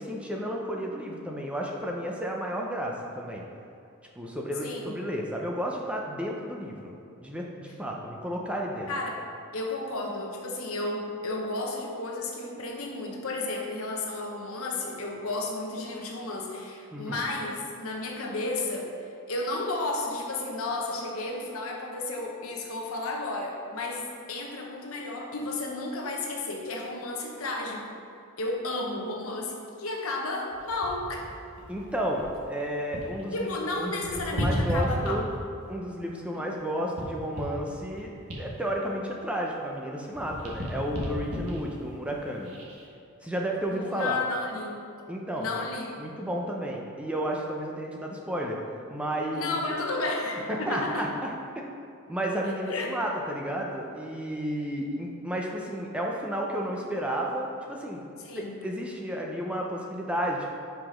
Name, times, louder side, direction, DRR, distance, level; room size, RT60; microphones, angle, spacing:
voice 1, 0.0-3.4 4.2-6.9 7.2-8.9 16.9-17.2 31.7-35.3 35.7-38.1 38.4-42.5 43.2-44.2 45.1-45.5 46.0-48.6 48.9-49.5 50.5-51.6 52.1-58.0 58.4-60.5, equal, 5° right, -1 dB, 0.5 m, -32 dB
voice 2, 4.6-4.9 8.9-9.1 9.5-18.9 19.3-28.0 28.4-31.3 33.3-35.2 36.3-36.4 43.7-44.8 45.4-46.0 49.3-51.0 52.4-52.9 58.2-58.6, left 2 dB, 65° left, 0 dB, 1.0 m, -32 dB
sound 1, 30.5-33.3 33.5-35.7 36.2-39.8 40.1-42.9 43.4-43.6, equal, 85° right, 1.3 m, -35 dB
5.7 x 4.8 x 5.0 m, 2.6 s
head